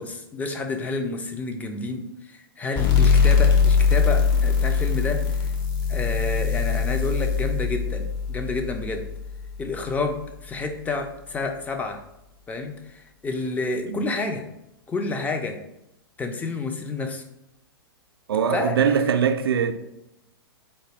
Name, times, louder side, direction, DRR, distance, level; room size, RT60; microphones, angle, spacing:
voice 1, 0.0-5.5 5.9-9.1 9.6-12.0 12.5-14.4 14.9-15.6 16.2-17.2 18.5-18.7, left 3 dB, 10° left, 0.4 m, -29 dB
sound 1, 2.8-10.0, left 6 dB, 35° left, 0.8 m, -22 dB
voice 2, 18.3-19.7, right 7 dB, 75° right, 0.4 m, -22 dB
4.0 x 2.2 x 3.3 m
hypercardioid pair, 110°, 13 cm